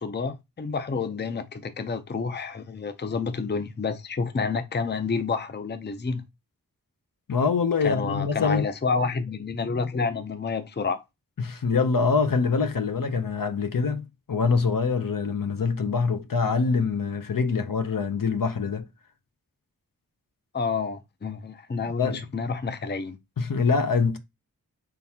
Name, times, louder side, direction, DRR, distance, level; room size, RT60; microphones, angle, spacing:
voice 1, 0.0-6.2 7.8-11.0 20.5-23.2, left 4 dB, 30° left, 0.5 m, -29 dB
voice 2, 7.3-8.7 11.4-18.9 22.0-22.2 23.4-24.2, left 5 dB, 65° left, 0.7 m, -24 dB
4.6 x 3.8 x 2.8 m
wide cardioid pair, 50°, 35 cm